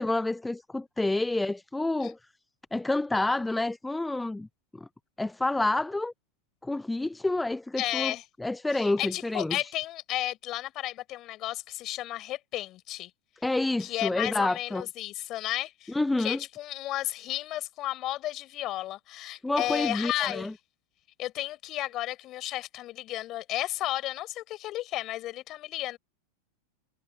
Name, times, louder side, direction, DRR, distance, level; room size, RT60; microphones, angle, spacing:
voice 1, 0.0-2.2 2.7-4.5 4.7-4.9 5.2-6.1 6.6-9.7 13.4-14.8 15.9-16.4 19.4-20.5, left 2 dB, 5° left, 0.6 m, -28 dB
voice 2, 7.8-8.2 9.0-13.1 13.8-20.5 21.2-26.0, left 15 dB, 35° left, 4.7 m, -33 dB
figure-of-eight pair, 90°, 0 cm